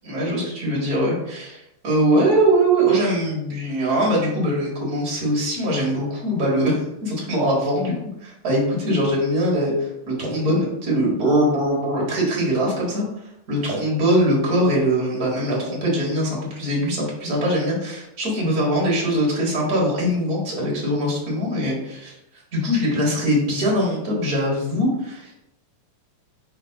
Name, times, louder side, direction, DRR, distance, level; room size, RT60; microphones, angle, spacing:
voice 1, 0.0-8.0 8.2-13.1 13.5-22.1 22.5-25.4, right 1 dB, 35° right, -4 dB, 1.7 m, -22 dB
4.6 x 3.9 x 5.1 m, 0.84 s
omnidirectional pair, 3.6 m